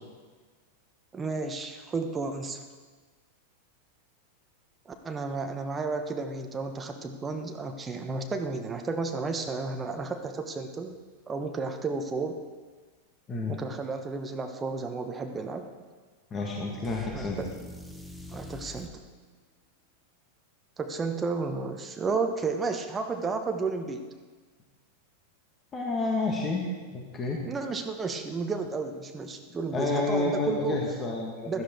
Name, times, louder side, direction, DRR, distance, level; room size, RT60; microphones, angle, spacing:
voice 1, 1.1-2.6 4.8-11.0 11.3-12.4 13.5-15.6 17.1-17.5 18.3-19.0 20.8-24.0 27.5-30.8 31.5-31.6, right 4 dB, 15° right, 5 dB, 1.3 m, -32 dB
voice 2, 16.3-17.4 25.7-27.4 29.7-31.6, left 3 dB, 25° left, -1 dB, 2.2 m, -30 dB
sound 1, 16.8-19.0, left 2 dB, ahead, 1.3 m, -44 dB
15.5 x 13.0 x 4.7 m, 1.5 s
figure-of-eight pair, 90°, 0 cm